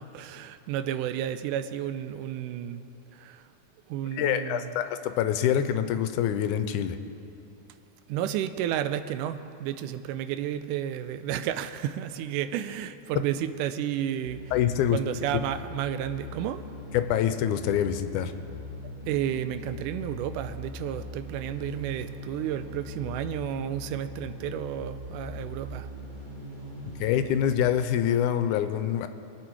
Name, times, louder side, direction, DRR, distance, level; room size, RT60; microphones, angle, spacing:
voice 1, 0.0-2.8 3.1-3.5 3.9-4.8 8.1-14.4 14.9-16.6 19.1-25.9, right 10 dB, 85° right, 11 dB, 2.1 m, -32 dB
voice 2, 4.1-7.0 14.5-15.0 16.9-18.3 26.8-29.1, left 10 dB, 80° left, 10 dB, 2.0 m, -25 dB
sound 1, 14.2-27.6, left 2 dB, 25° right, 1.2 m, -41 dB
23.0 x 8.3 x 4.6 m, 2.6 s
omnidirectional pair, 3.6 m